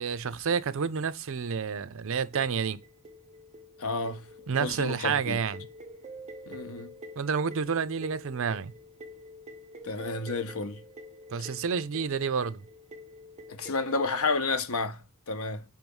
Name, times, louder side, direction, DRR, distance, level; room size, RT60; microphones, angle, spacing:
voice 1, 0.0-2.8 4.5-5.7 7.2-8.7 11.3-12.6, right 6 dB, 65° right, 0.5 m, -29 dB
sound 1, 2.3-14.6, equal, 30° right, 1.0 m, -47 dB
voice 2, 3.8-4.3 4.6-5.4 6.5-6.9 9.8-10.8 11.4-11.5 13.5-15.6, left 3 dB, 90° left, 0.8 m, -31 dB
5.5 x 4.7 x 5.4 m
head